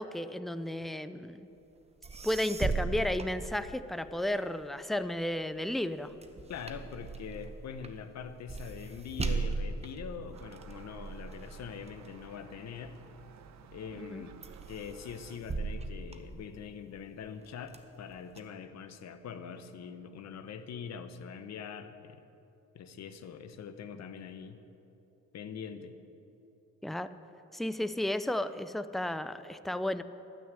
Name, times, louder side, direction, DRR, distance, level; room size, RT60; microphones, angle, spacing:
voice 1, 0.0-1.5 2.2-6.1 14.0-14.2 26.8-27.1 27.5-30.0, left 1 dB, ahead, 12 dB, 0.4 m, -33 dB
sound 1, 1.8-1.9 2.0-4.1 4.6-13.2 13.8-14.1 14.4-16.9 17.4-18.4, right 3 dB, 20° right, 0.9 m, -38 dB
voice 2, 6.5-13.0 13.7-14.4 14.7-22.2 22.7-24.6 25.3-26.0, left 7 dB, 60° left, 10 dB, 0.9 m, -43 dB
Gull seagull, 10.3-15.4, right 7 dB, 65° right, 0.8 m, -54 dB
12.5 x 6.3 x 8.1 m, 2.9 s
cardioid pair, 90°, 30 cm